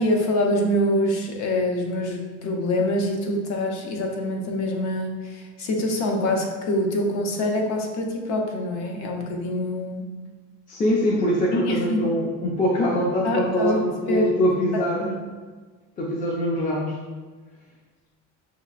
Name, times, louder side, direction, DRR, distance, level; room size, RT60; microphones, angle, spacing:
voice 1, 0.0-10.1 11.5-12.2 13.2-13.8 14.1-14.3 14.7-15.2, left 1 dB, 55° left, 2 dB, 0.7 m, -25 dB
voice 2, 10.7-15.2 16.0-17.0, equal, 25° left, -4 dB, 0.5 m, -23 dB
5.8 x 2.8 x 2.4 m, 1.4 s
cardioid pair, 155°, 33 cm